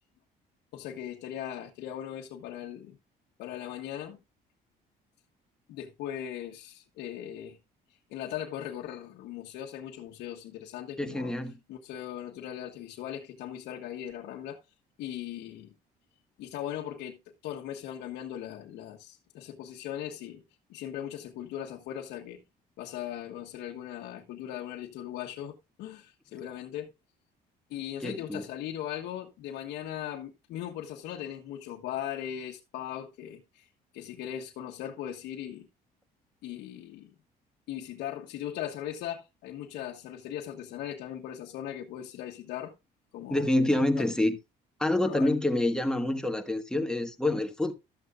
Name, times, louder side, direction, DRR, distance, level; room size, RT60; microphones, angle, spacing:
voice 1, 0.7-3.0 3.4-4.2 5.7-7.6 8.1-11.3 11.7-14.6 15.0-15.7 16.4-17.2 17.4-20.4 20.7-22.4 22.8-26.9 27.7-33.7 33.9-35.7 36.4-37.1 37.7-42.7 43.1-43.5 45.1-45.3, left 11 dB, 85° left, 1.3 m, -39 dB
voice 2, 11.0-11.6 28.0-28.4 43.3-44.4 44.8-47.7, left 1 dB, 5° left, 1.5 m, -27 dB
13.0 x 7.9 x 2.4 m
cardioid pair, 110°, 17 cm